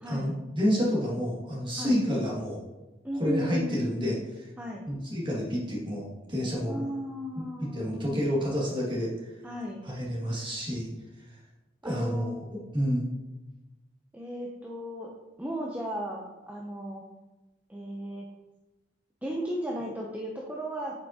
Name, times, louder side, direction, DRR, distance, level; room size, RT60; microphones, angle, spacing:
voice 1, 0.1-2.6 3.2-4.2 4.9-6.8 7.4-9.1 9.9-10.9 11.8-12.4 12.7-13.1, equal, 30° right, -5 dB, 2.1 m, -29 dB
voice 2, 3.0-4.2 4.6-4.8 6.7-8.3 9.4-9.8 11.8-12.4 14.1-15.1 15.4-17.0 17.7-18.3 19.2-21.0, equal, 10° right, -2 dB, 0.7 m, -35 dB
7.9 x 5.5 x 2.8 m, 1.1 s
head